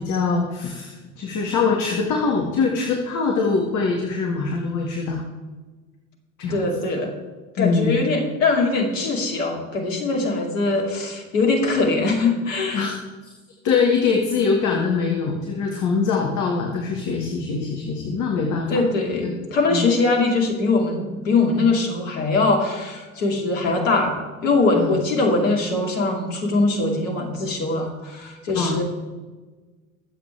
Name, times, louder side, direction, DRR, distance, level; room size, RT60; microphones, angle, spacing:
voice 1, 0.0-5.2 6.4-6.7 7.6-7.9 12.7-12.9 13.6-18.7 19.2-19.3 19.7-19.9 24.7-25.0 28.6-28.8, left 5 dB, 45° left, 0 dB, 1.9 m, -23 dB
voice 2, 6.5-7.1 7.6-12.9 18.7-28.8, left 3 dB, 70° left, 2 dB, 2.5 m, -22 dB
22.0 x 7.8 x 3.4 m, 1.3 s
figure-of-eight pair, 60°, 40 cm